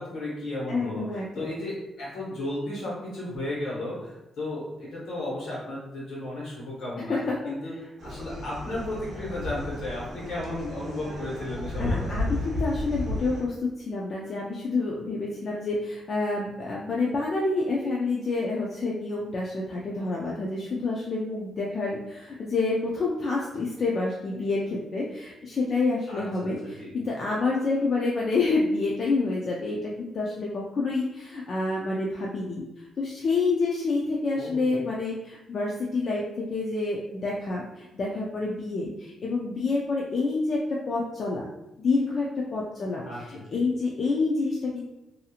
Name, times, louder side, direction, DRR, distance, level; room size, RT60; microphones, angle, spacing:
voice 1, 0.0-1.0 1.3-7.2 7.4-7.7 8.0-12.2 26.1-26.9 34.3-34.8 43.0-43.6, left 1 dB, 65° left, -6 dB, 1.3 m, -34 dB
voice 2, 0.7-1.5 7.1-7.5 11.8-41.4 41.8-44.9, left 3 dB, 40° left, -3 dB, 0.3 m, -28 dB
sound 1, 8.0-13.4, left 1 dB, 60° right, 0.8 m, -33 dB
2.7 x 2.6 x 2.4 m, 0.93 s
cardioid pair, 160°, 0 cm